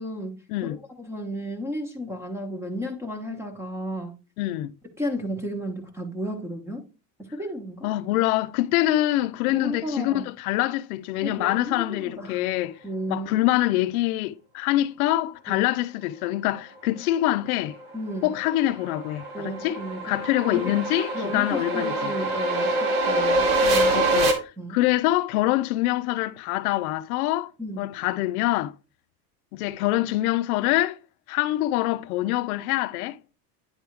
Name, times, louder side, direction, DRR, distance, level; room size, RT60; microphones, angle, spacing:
voice 1, 0.0-4.1 5.0-6.9 7.2-7.9 9.5-10.3 11.2-12.5 12.8-13.4 15.5-15.7 17.9-18.3 19.3-20.2 20.5-20.7 21.1-24.0 24.6-24.8 27.6-27.8, equal, 5° right, 1.1 m, -33 dB
voice 2, 4.4-4.7 7.8-12.8 13.1-17.8 18.2-19.8 20.0-22.1 23.9-27.5 27.8-28.7 29.5-31.0 31.3-33.2, left 16 dB, 70° left, 0.6 m, -25 dB
sound 1, 17.7-24.3, right 1 dB, 55° right, 2.1 m, -25 dB
9.6 x 3.5 x 4.6 m
supercardioid pair, 160°, 46 cm